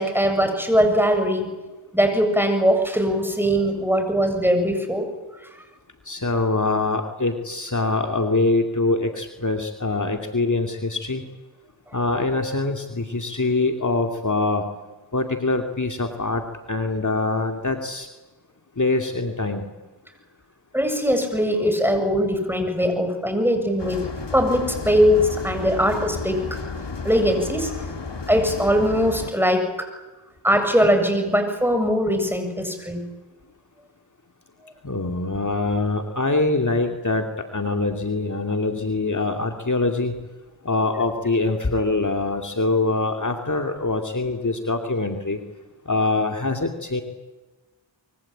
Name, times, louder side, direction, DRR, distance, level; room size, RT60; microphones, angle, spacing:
voice 1, 0.0-1.5 1.9-5.1 20.7-24.1 24.3-26.4 27.0-27.7 28.3-29.9 30.4-33.0, equal, 5° right, 6 dB, 7.6 m, -21 dB
voice 2, 6.1-11.2 11.9-14.6 15.1-16.4 16.7-18.1 18.8-19.7 34.8-40.1 40.6-45.4 45.9-47.0, left 3 dB, 40° left, 4 dB, 2.8 m, -24 dB
sound 1, 23.8-29.3, left 4 dB, 65° left, 3.5 m, -32 dB
25.5 x 23.5 x 8.9 m, 1.2 s
cardioid pair, 50°, 45 cm